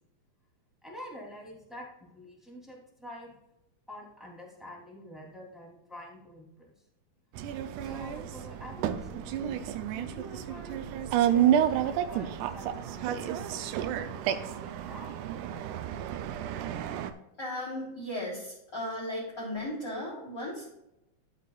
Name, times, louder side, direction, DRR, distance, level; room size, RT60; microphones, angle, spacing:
voice 1, 0.8-3.3 3.9-6.7 7.8-15.1, equal, ahead, -4 dB, 2.4 m, -47 dB
sound 1, 7.4-17.1, right 10 dB, 80° right, 1.8 m, -30 dB
voice 2, 17.4-20.7, left 1 dB, 25° left, -8 dB, 3.6 m, -36 dB
13.0 x 8.0 x 2.4 m, 0.86 s
omnidirectional pair, 4.1 m